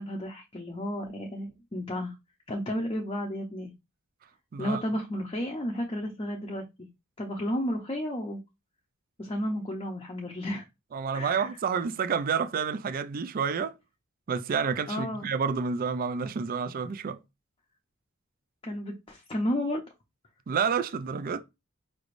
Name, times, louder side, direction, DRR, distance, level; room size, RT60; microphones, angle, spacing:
voice 1, 0.0-2.1 2.5-3.7 4.6-6.9 7.2-8.4 9.2-10.6 11.1-11.4 14.9-15.3 18.6-19.8, equal, 25° left, 0.6 m, -32 dB
voice 2, 10.9-13.7 14.3-17.2 20.5-21.4, right 6 dB, 40° right, 0.4 m, -29 dB
5.1 x 3.2 x 2.5 m
head